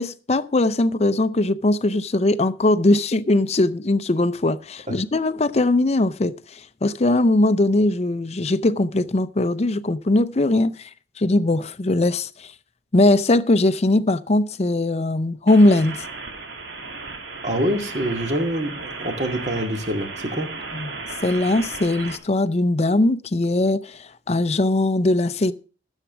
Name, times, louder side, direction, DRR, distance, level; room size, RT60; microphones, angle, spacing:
voice 1, 0.0-10.9 11.2-12.5 12.9-16.0 20.7-20.9 21.2-25.5, left 2 dB, 35° left, 0.6 m, -20 dB
sound 1, 15.5-22.2, right 3 dB, 80° right, 1.9 m, -35 dB
voice 2, 17.4-20.5, equal, 40° right, 2.0 m, -25 dB
13.5 x 7.4 x 6.0 m
head